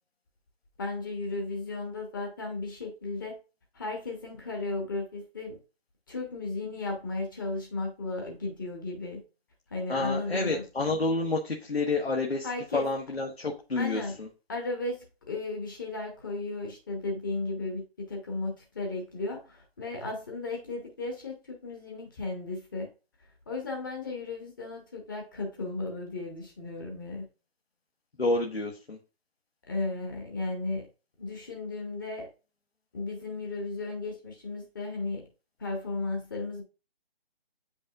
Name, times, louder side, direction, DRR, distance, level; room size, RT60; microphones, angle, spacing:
voice 1, 0.8-3.3 3.7-5.6 6.1-9.2 9.7-10.6 12.4-12.9 13.8-14.2 14.5-22.9 23.5-27.3 29.7-30.8 31.2-32.3 32.9-35.2 35.6-36.6, left 3 dB, 20° left, 1 dB, 0.8 m, -35 dB
voice 2, 9.9-12.5 12.7-14.3 28.2-29.0, left 2 dB, 80° left, 0 dB, 1.3 m, -29 dB
8.1 x 5.3 x 2.4 m, 0.32 s
figure-of-eight pair, 150°, 31 cm